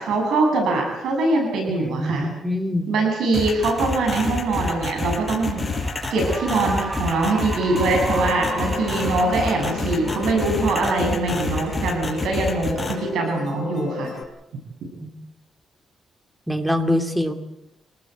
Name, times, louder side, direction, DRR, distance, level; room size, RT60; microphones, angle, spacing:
voice 1, 0.0-2.3 2.9-5.7 6.1-14.1, right 3 dB, 90° right, 2 dB, 7.8 m, -23 dB
voice 2, 1.8-2.9 15.0-15.1 16.5-17.3, left 1 dB, 5° right, 7 dB, 2.5 m, -24 dB
sound 1, 3.3-12.9, left 3 dB, 15° left, 5.2 m, -27 dB
Cheering / Applause, 5.5-12.0, right 3 dB, 35° right, 5.8 m, -35 dB
Musical instrument, 7.8-14.2, left 4 dB, 50° left, 5.9 m, -33 dB
27.5 x 19.0 x 8.1 m, 0.87 s
cardioid pair, 140°, 0 cm